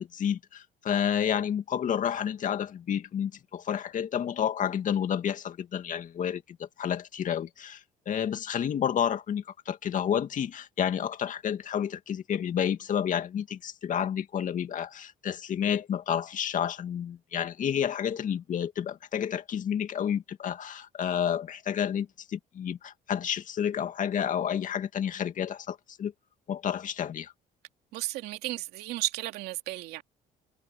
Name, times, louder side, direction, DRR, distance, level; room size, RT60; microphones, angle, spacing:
voice 1, 0.0-26.1 26.5-27.3, left 9 dB, 50° left, 2.4 m, -30 dB
voice 2, 27.9-30.0, right 17 dB, 80° right, 2.8 m, -34 dB
supercardioid pair, 85°, 16 cm